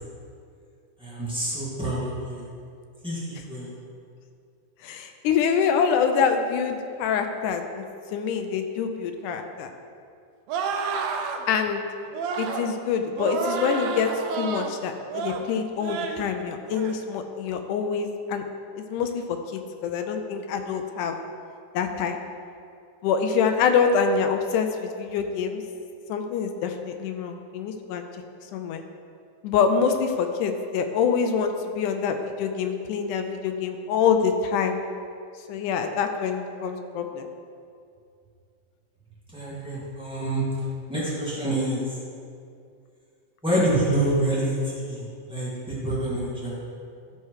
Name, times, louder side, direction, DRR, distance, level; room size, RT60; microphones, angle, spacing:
voice 1, 1.0-2.5 3.0-3.7 39.3-40.4 40.9-41.9 43.4-46.6, right 1 dB, 5° right, -9 dB, 1.0 m, -27 dB
voice 2, 4.8-7.8 8.1-9.7 11.5-11.8 12.4-14.1 14.4-18.5 18.8-21.2 21.7-22.2 23.0-25.6 26.1-28.0 28.5-28.8 29.4-34.8 35.5-37.3, left 6 dB, 80° left, 6 dB, 1.9 m, -25 dB
sound 1, 10.5-11.4 12.1-12.7 13.2-14.7 15.1-15.4 15.8-16.2 16.7-17.0, right 5 dB, 90° right, 1.5 m, -30 dB
13.0 x 4.4 x 4.7 m, 2.4 s
omnidirectional pair, 4.0 m